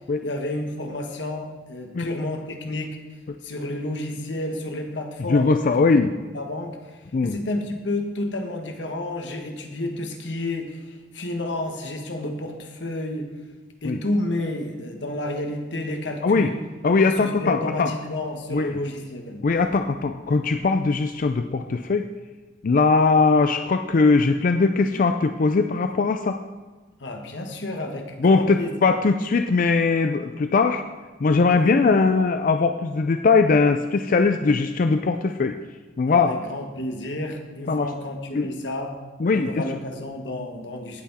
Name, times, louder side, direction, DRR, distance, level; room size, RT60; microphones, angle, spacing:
voice 1, 0.2-2.9 3.4-5.7 6.3-6.8 7.2-13.3 13.8-16.6 17.1-19.4 27.0-28.9 31.5-31.9 36.1-38.9 39.3-41.0, left 1 dB, 85° left, 3 dB, 1.5 m, -30 dB
voice 2, 5.3-6.1 7.1-7.4 13.8-14.0 16.2-16.5 16.8-17.9 18.5-18.7 19.4-22.1 22.6-26.4 28.2-30.8 31.2-35.6 36.0-36.3 37.7-37.9 38.3-38.5 39.2-39.6, left 4 dB, 50° left, 7 dB, 0.4 m, -20 dB
17.0 x 5.9 x 4.2 m, 1.3 s
head